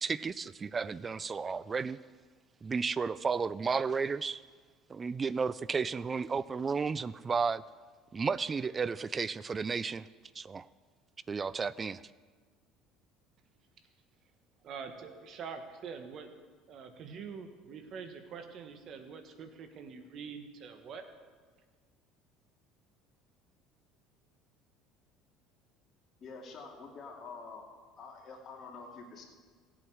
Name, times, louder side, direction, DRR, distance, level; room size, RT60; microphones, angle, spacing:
voice 1, 0.0-2.0 2.6-4.4 4.9-7.6 8.1-10.1 10.4-10.7 11.3-12.0, right 5 dB, 25° right, 19 dB, 0.3 m, -33 dB
voice 2, 14.6-16.3 16.7-21.0, right 6 dB, 50° right, 7 dB, 1.3 m, -45 dB
voice 3, 26.2-27.7 28.0-29.2, left 4 dB, 45° left, 0 dB, 2.4 m, -47 dB
16.5 x 7.8 x 4.7 m, 1.5 s
supercardioid pair, 105°, 0 cm